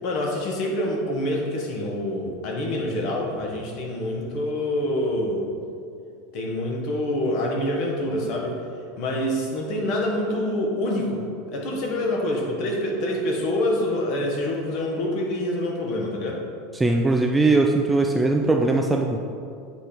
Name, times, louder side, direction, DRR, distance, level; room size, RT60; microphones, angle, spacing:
voice 1, 0.0-5.5 6.3-8.6 9.0-11.2 11.5-16.4, left 1 dB, 50° left, 0 dB, 1.5 m, -26 dB
voice 2, 16.7-19.2, right 2 dB, 5° right, 2 dB, 0.4 m, -20 dB
8.0 x 5.1 x 4.5 m, 2.4 s
supercardioid pair, 145°, 0 cm